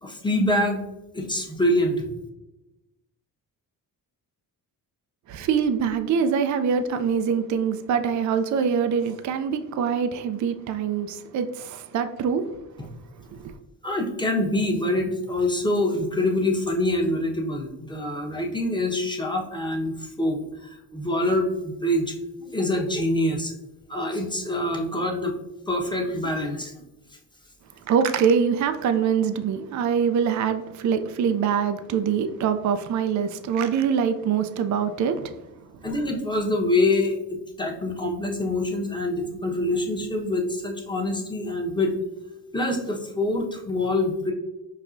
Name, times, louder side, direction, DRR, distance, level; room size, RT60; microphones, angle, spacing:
voice 1, 0.0-0.8 1.1-2.1 13.8-22.1 22.4-23.5 23.9-25.3 25.7-26.7 35.8-41.9 42.5-44.3, left 1 dB, 10° left, 1.0 m, -25 dB
voice 2, 5.3-12.4 13.3-13.5 27.9-35.3, right 7 dB, 45° right, 0.4 m, -24 dB
5.4 x 2.3 x 2.5 m
supercardioid pair, 55°, 42 cm